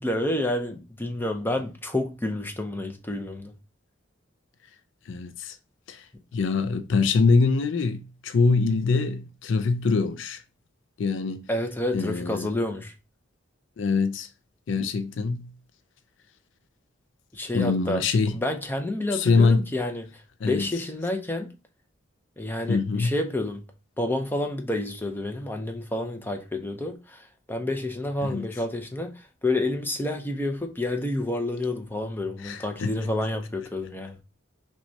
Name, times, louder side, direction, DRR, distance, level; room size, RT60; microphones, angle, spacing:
voice 1, 0.0-3.5 11.5-12.9 17.3-18.0 18.3-21.5 22.4-23.6 24.0-34.2, left 1 dB, 10° left, 0.5 m, -29 dB
voice 2, 5.1-5.6 5.9-6.0 6.3-10.4 11.0-11.5 11.9-12.5 13.8-14.3 14.7-15.5 17.5-18.4 19.1-19.7 20.4-20.7 22.7-23.1 28.2-28.5 32.4-32.9, left 4 dB, 65° left, 0.4 m, -24 dB
5.8 x 2.3 x 2.7 m
head